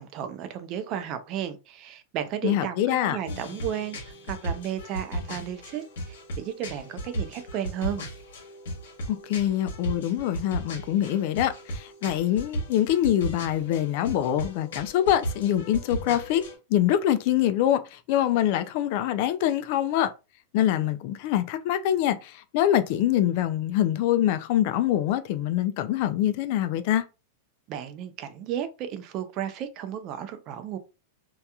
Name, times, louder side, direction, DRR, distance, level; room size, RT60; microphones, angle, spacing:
voice 1, 0.0-2.7 3.0-4.0 4.3-8.0 27.7-30.8, right 9 dB, 40° right, 0.5 m, -33 dB
voice 2, 2.4-3.2 9.1-16.4 16.7-20.1 20.5-27.0, left 12 dB, 55° left, 0.3 m, -24 dB
sound 1, 3.3-16.5, equal, 80° left, 1.0 m, -36 dB
2.8 x 2.3 x 2.3 m
supercardioid pair, 135°, 0 cm